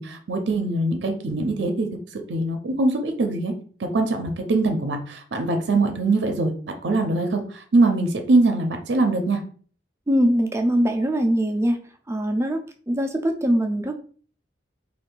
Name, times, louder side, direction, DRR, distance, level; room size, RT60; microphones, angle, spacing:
voice 1, 0.0-1.9 2.1-3.5 3.8-6.5 6.8-9.4, right 2 dB, 70° right, 5 dB, 0.5 m, -22 dB
voice 2, 10.1-11.8 12.1-12.6 12.9-14.0, equal, 15° right, 5 dB, 0.3 m, -22 dB
2.6 x 2.4 x 3.7 m, 0.43 s
head